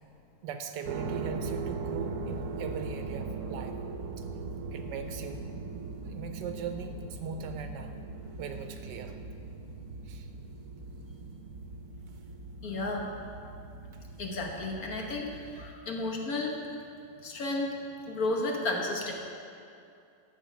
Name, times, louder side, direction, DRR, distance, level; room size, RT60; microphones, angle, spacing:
voice 1, 0.4-3.8 4.2-4.3 4.7-5.5 6.0-8.0 8.4-9.2 10.0-10.3, right 6 dB, 85° right, 6 dB, 1.4 m, -40 dB
sound 1, 0.8-15.7, right 4 dB, 65° right, 1.1 m, -39 dB
voice 2, 12.6-13.0 14.2-15.3 15.5-16.5 17.2-17.7 18.1-19.1, left 2 dB, 60° left, 0 dB, 1.5 m, -32 dB
11.5 x 6.6 x 5.1 m, 2.5 s
omnidirectional pair, 1.9 m